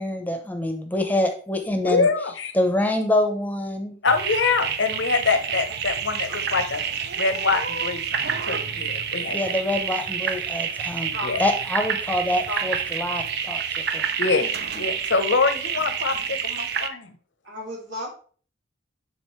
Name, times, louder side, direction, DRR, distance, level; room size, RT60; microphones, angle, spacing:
voice 1, 0.0-2.1 2.5-4.0 9.3-11.1 11.4-14.0, left 1 dB, 10° left, 5 dB, 0.8 m, -25 dB
voice 2, 1.8-2.5 4.0-6.8 7.2-9.5 11.2-11.4 14.2-17.2, left 4 dB, 80° left, 9 dB, 0.9 m, -24 dB
sound 1, 4.1-16.9, right 7 dB, 60° right, 0.6 m, -28 dB
voice 3, 17.4-18.1, left 1 dB, 75° right, -2 dB, 2.5 m, -33 dB
10.0 x 3.9 x 3.2 m, 0.43 s
head